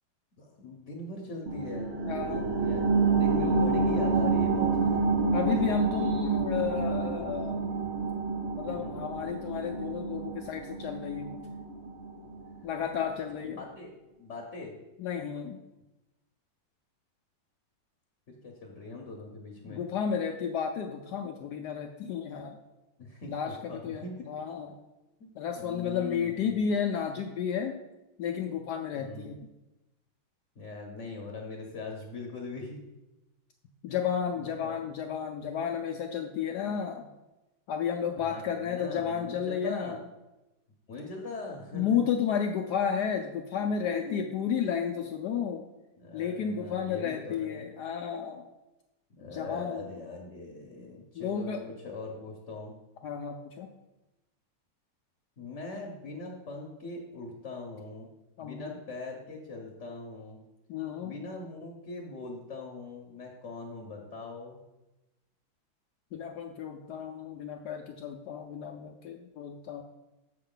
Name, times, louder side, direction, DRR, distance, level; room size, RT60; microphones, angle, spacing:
voice 1, 0.4-1.9 2.6-5.0 5.5-5.6 8.7-9.0 13.4-13.9 14.2-14.7 18.3-19.8 23.0-24.3 25.2-25.3 25.6-26.5 28.9-29.4 30.5-32.8 34.4-34.8 38.1-40.0 40.9-42.0 43.6-44.2 46.0-47.7 49.2-52.7 55.4-58.1 58.4-60.4 61.0-64.6, left 3 dB, 45° left, 1 dB, 1.0 m, -41 dB
sound 1, 1.5-12.6 13.0-13.1, right 4 dB, 80° right, 0.5 m, -28 dB
voice 2, 2.0-2.6 5.3-7.6 8.6-11.4 12.6-13.6 15.0-15.6 19.7-22.6 23.3-24.7 25.4-27.8 28.2-29.5 33.8-37.1 37.7-40.0 41.7-45.7 46.1-48.5 49.3-49.8 51.1-51.6 53.0-53.7 58.4-58.7 60.7-61.1 66.1-69.8, left 7 dB, 70° left, 4 dB, 1.0 m, -32 dB
7.6 x 6.3 x 3.8 m, 1.0 s
omnidirectional pair, 2.2 m